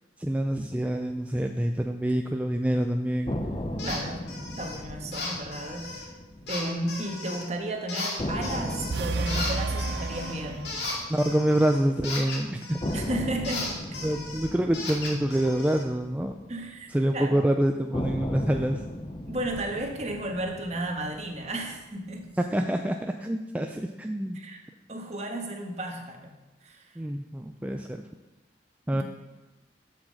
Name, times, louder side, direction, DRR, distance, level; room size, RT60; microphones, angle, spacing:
voice 1, 0.2-3.4 11.1-13.0 14.0-16.3 16.9-18.8 22.5-24.4 27.0-28.0 28.9-29.0, right 1 dB, 10° right, 4 dB, 0.3 m, -26 dB
sound 1, 3.3-7.3 7.6-7.7 8.2-12.3 12.8-17.2 17.9-22.3, left 1 dB, 25° left, 0.7 m, -37 dB
sound 2, 3.8-4.0 4.3-4.8 5.1-6.0 6.5-7.5 7.9-9.0 9.3-13.1 13.4-15.8, left 3 dB, 75° left, 2.3 m, -36 dB
voice 2, 3.8-4.3 4.6-6.1 6.5-10.7 12.9-13.8 16.5-16.9 17.1-17.4 19.3-22.4 24.3-24.6 24.9-26.4 26.6-26.9 28.9-29.0, right 1 dB, 40° right, 3 dB, 1.3 m, -33 dB
sound 3, 8.9-11.2, right 3 dB, 70° right, 0.5 m, -31 dB
7.4 x 7.3 x 6.3 m, 1.1 s
head